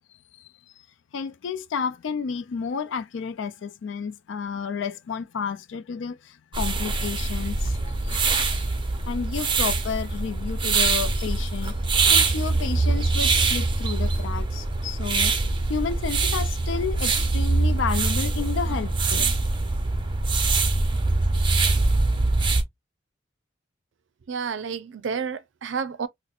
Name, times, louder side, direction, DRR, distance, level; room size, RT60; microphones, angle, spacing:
voice 1, 1.1-7.8 8.0-8.7 9.0-11.7 12.1-15.3 15.7-19.4, left 6 dB, 75° left, 0.4 m, -31 dB
sound 1, 6.5-22.6, right 3 dB, 25° right, 0.6 m, -23 dB
voice 2, 24.3-26.1, right 6 dB, 70° right, 0.4 m, -30 dB
4.1 x 2.1 x 2.4 m
head